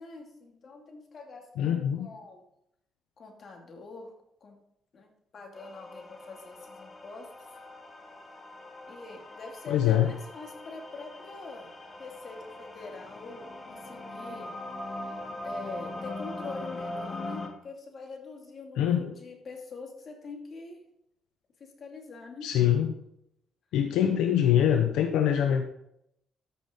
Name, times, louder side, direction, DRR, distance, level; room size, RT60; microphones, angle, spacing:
voice 1, 0.0-2.4 3.2-4.1 4.4-4.6 4.9-7.3 8.9-11.7 12.0-14.5 15.0-15.1 15.4-20.8 21.6-22.5, left 4 dB, 50° left, 1 dB, 2.7 m, -44 dB
voice 2, 1.6-2.1 9.7-10.1 18.8-19.1 22.4-22.9 23.7-25.6, left 10 dB, 90° left, 5 dB, 0.7 m, -24 dB
sound 1, 5.5-17.5, left 1 dB, 30° left, 1.9 m, -41 dB
13.5 x 6.6 x 4.0 m, 0.77 s
cardioid pair, 90°, 0 cm